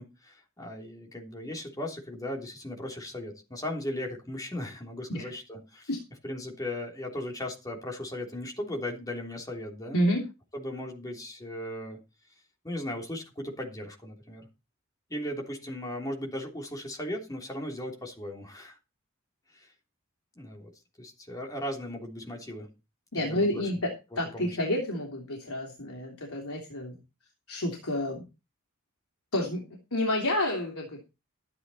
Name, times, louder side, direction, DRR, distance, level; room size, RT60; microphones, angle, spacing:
voice 1, 0.0-5.9 6.2-10.0 10.5-12.0 12.6-14.5 15.1-18.8 19.5-19.7 20.4-20.7 21.0-22.7 23.1-23.8 24.1-24.6, left 1 dB, 15° left, 1 dB, 3.3 m, -37 dB
voice 2, 9.9-10.3 23.1-27.0 27.5-28.2 29.3-29.6 29.9-31.0, left 1 dB, 85° left, 0 dB, 3.2 m, -29 dB
13.0 x 9.7 x 4.2 m, 0.28 s
head